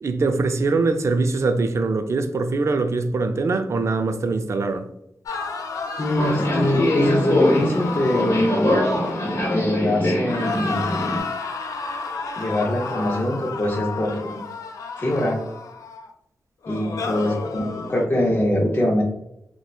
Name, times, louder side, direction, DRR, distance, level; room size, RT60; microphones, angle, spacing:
voice 1, 0.0-4.9, right 3 dB, 60° right, 0.3 m, -22 dB
sound 1, 5.3-9.9 10.2-16.1 16.6-18.1, left 4 dB, 85° left, 0.3 m, -31 dB
voice 2, 6.0-8.7 9.5-11.1 12.4-14.3 15.0-15.4 16.7-19.0, left 1 dB, 35° left, 0.5 m, -23 dB
Subway metro underground, 6.2-11.2, left 1 dB, 65° left, 0.9 m, -23 dB
3.0 x 2.1 x 2.2 m
cardioid pair, 60°, 6 cm